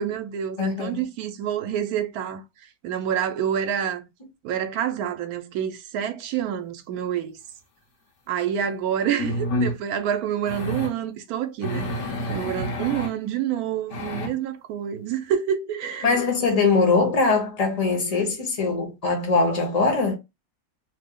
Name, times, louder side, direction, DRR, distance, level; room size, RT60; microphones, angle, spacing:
voice 1, 0.0-2.4 2.8-4.1 4.4-7.4 8.3-16.2, right 9 dB, 90° right, 1.1 m, -28 dB
voice 2, 0.6-1.0 16.0-20.2, left 4 dB, 30° left, 0.8 m, -22 dB
sound 1, 8.4-8.5 9.2-9.8 10.5-10.9 11.6-13.1 13.9-14.3, left 1 dB, 60° left, 1.1 m, -28 dB
3.0 x 2.0 x 3.6 m
omnidirectional pair, 1.5 m